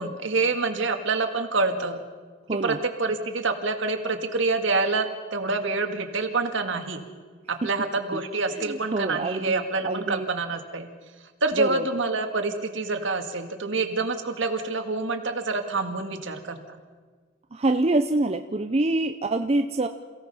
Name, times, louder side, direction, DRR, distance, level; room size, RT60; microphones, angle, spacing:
voice 1, 0.0-2.0 2.6-7.0 7.5-10.9 11.4-16.6, right 3 dB, 65° right, 5 dB, 2.0 m, -27 dB
voice 2, 2.5-2.8 8.5-10.3 11.6-11.8 17.5-19.9, right 2 dB, 30° right, 6 dB, 0.6 m, -26 dB
28.5 x 16.5 x 5.6 m, 1.5 s
head